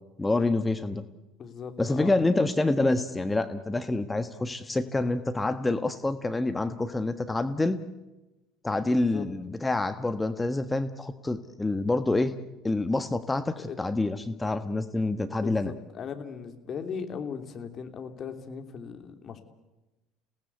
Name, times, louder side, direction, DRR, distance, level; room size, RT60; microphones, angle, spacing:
voice 1, 0.2-1.0 1.8-7.8 8.6-12.3 12.6-15.7, left 2 dB, 15° left, 10 dB, 1.4 m, -27 dB
voice 2, 1.4-2.2 8.9-9.3 13.6-13.8 15.4-19.4, left 6 dB, 45° left, 7 dB, 3.1 m, -38 dB
29.5 x 18.0 x 8.3 m, 1.1 s
hypercardioid pair, 65°, 0 cm